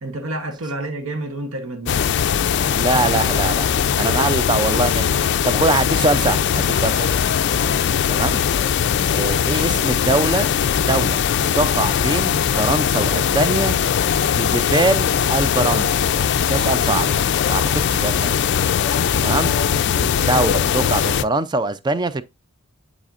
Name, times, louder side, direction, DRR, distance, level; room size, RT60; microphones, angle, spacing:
voice 1, 0.0-2.7 7.6-7.9 19.1-19.4 19.7-20.4, right 2 dB, 70° right, 1.0 m, -31 dB
sound 1, 1.9-21.2, left 8 dB, 55° left, 0.3 m, -20 dB
voice 2, 2.7-3.7 4.0-7.1 8.1-8.4 9.1-10.5 10.9-11.2 11.5-13.8 14.3-16.2 16.5-18.4 19.2-19.6 20.2-22.2, right 2 dB, 20° right, 0.4 m, -23 dB
10.0 x 4.2 x 2.5 m
head